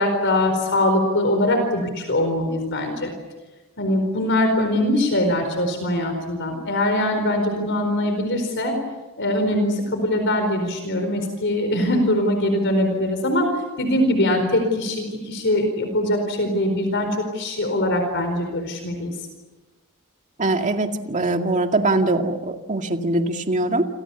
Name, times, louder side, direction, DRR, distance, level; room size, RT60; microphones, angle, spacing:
voice 1, 0.0-3.1 3.8-8.7 9.2-13.5 13.8-19.1, left 1 dB, 55° left, 6 dB, 4.6 m, -22 dB
voice 2, 20.4-23.8, right 2 dB, 35° right, 5 dB, 2.1 m, -22 dB
29.0 x 26.0 x 7.1 m, 1.2 s
head